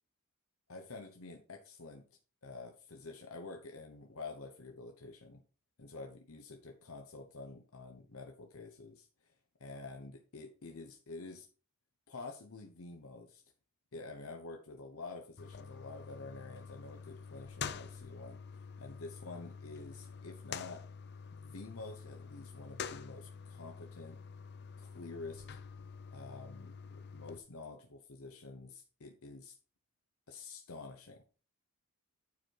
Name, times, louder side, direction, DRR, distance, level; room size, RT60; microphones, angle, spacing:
voice 1, 0.7-2.1 2.4-5.4 5.8-9.3 9.6-11.5 12.1-13.4 13.9-18.4 18.8-20.8 21.3-24.2 24.8-25.5 26.1-29.6 30.3-31.2, left 3 dB, 70° left, 4 dB, 0.9 m, -48 dB
sound 1, 15.4-27.4, left 6 dB, 50° left, 0.6 m, -47 dB
9.5 x 4.6 x 4.6 m, 0.37 s
head